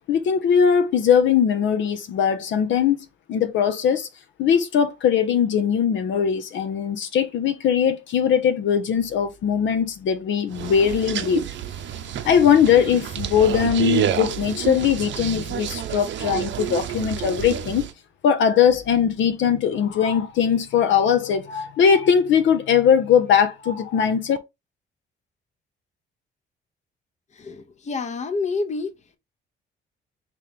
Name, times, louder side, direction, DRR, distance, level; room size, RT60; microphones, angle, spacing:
voice 1, 0.1-4.1 4.4-11.5 12.2-17.8 18.2-24.4, left 7 dB, 70° left, 0.6 m, -20 dB
sound 1, 10.5-17.9, right 10 dB, 70° right, 0.6 m, -29 dB
voice 2, 27.3-28.9, left 4 dB, 35° left, 0.8 m, -28 dB
3.7 x 2.9 x 3.4 m
cardioid pair, 90°, 20 cm